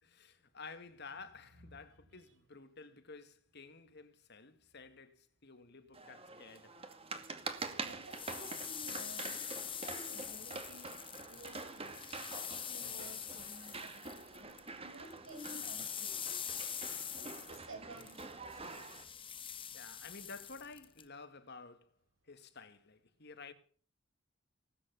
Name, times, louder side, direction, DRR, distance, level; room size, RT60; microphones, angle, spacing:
voice 1, 0.0-6.8 19.7-21.9 22.3-23.5, left 4 dB, 55° left, 2.1 m, -52 dB
sound 1, 5.9-19.0, right 3 dB, 30° right, 2.3 m, -46 dB
voice 2, 7.6-9.5 9.7-11.0 11.3-12.0 12.7-14.5 14.8-16.6 17.1-18.8, right 1 dB, 80° right, 7.5 m, -53 dB
sound 2, 7.9-14.7 14.9-21.0, left 8 dB, 25° left, 1.3 m, -44 dB
18.5 x 9.7 x 7.2 m
head